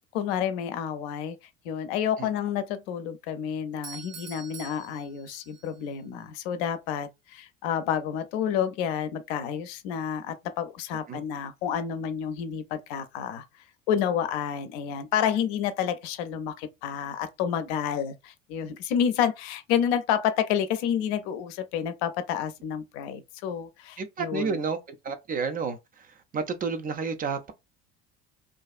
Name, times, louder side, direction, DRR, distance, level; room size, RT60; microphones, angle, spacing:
voice 1, 0.1-1.4 1.6-13.4 13.9-24.6, left 8 dB, 60° left, 0.5 m, -29 dB
Doorbell, 3.8-5.8, right 6 dB, 85° right, 0.6 m, -45 dB
voice 2, 24.0-24.8 25.0-27.5, right 5 dB, 25° right, 0.4 m, -31 dB
2.5 x 2.3 x 2.3 m
hypercardioid pair, 65°, 35 cm